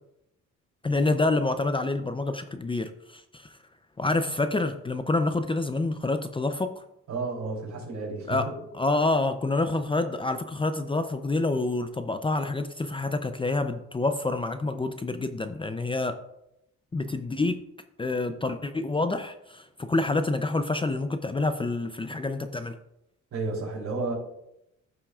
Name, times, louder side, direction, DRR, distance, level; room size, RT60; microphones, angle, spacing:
voice 1, 0.8-3.6 4.0-6.8 8.3-16.2 16.9-17.6 18.0-22.8, left 2 dB, 15° left, 8 dB, 0.5 m, -27 dB
voice 2, 7.1-8.4 23.3-24.2, right 3 dB, 65° right, -1 dB, 3.4 m, -31 dB
14.5 x 5.7 x 2.4 m, 0.83 s
cardioid pair, 90°, 30 cm